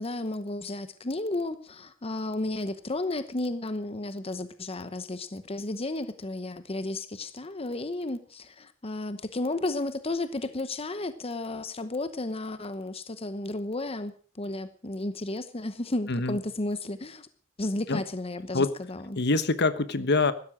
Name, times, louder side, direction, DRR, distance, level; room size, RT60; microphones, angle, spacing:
voice 1, 0.0-17.3 17.6-19.2, left 2 dB, 30° left, 12 dB, 0.9 m, -33 dB
voice 2, 16.1-16.4 17.9-18.0 18.5-18.8 19.2-20.3, left 3 dB, 55° left, 13 dB, 1.2 m, -25 dB
16.0 x 12.5 x 6.3 m, 0.44 s
head